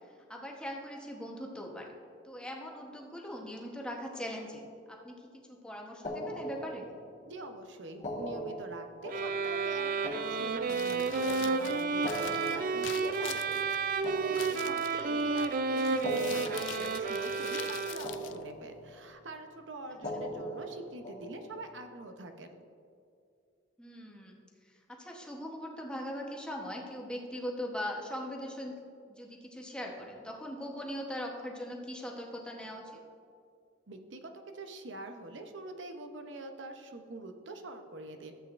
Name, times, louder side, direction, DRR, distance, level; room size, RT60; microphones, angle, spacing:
voice 1, 0.3-1.9 2.2-6.9 15.1-15.2 23.8-24.4 24.7-28.8 29.1-32.8, equal, 5° left, 0 dB, 1.0 m, -40 dB
sound 1, 6.0-7.3 7.9-11.2 11.9-15.2 15.9-17.8 18.0-19.1 19.9-21.7, equal, 40° left, 1.3 m, -42 dB
voice 2, 7.3-22.6 33.9-38.4, right 2 dB, 70° right, 6 dB, 0.8 m, -44 dB
sound 2, 9.1-18.3, right 4 dB, 45° right, 0.4 m, -31 dB
Crumpling crinkling, 10.6-19.1, left 10 dB, 70° left, 0.4 m, -45 dB
13.5 x 8.1 x 2.5 m, 2.4 s
head